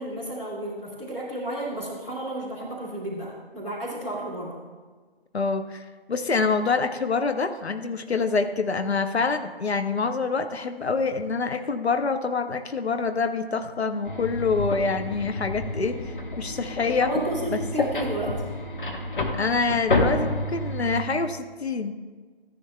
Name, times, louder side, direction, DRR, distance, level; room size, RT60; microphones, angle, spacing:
voice 1, 0.0-4.6 17.0-18.4, right 1 dB, 5° left, -11 dB, 0.9 m, -32 dB
voice 2, 5.3-5.8 6.1-16.0 16.4-17.1 17.5-17.6 19.3-21.9, left 4 dB, 85° left, 9 dB, 0.8 m, -26 dB
sound 1, 14.1-21.0, left 2 dB, 55° left, 1.2 m, -29 dB
15.0 x 10.5 x 2.2 m, 1.4 s
figure-of-eight pair, 160°, 31 cm